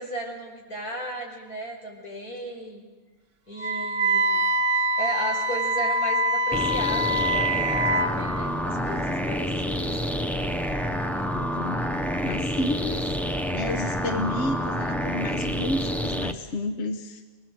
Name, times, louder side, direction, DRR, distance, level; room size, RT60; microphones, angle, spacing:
voice 1, 0.0-2.8 3.5-4.3 5.0-10.0, right 1 dB, 85° left, -1 dB, 6.1 m, -35 dB
voice 2, 3.6-4.0 4.3-4.4 11.3-11.9 12.2-17.2, left 2 dB, 50° left, 6 dB, 1.4 m, -32 dB
Wind instrument woodwind instrument, 3.6-8.1, right 1 dB, 60° right, 1.3 m, -24 dB
sound 1, 6.5-16.3, equal, ahead, 0.9 m, -28 dB
25.0 x 21.0 x 7.8 m, 1.3 s
omnidirectional pair, 1.5 m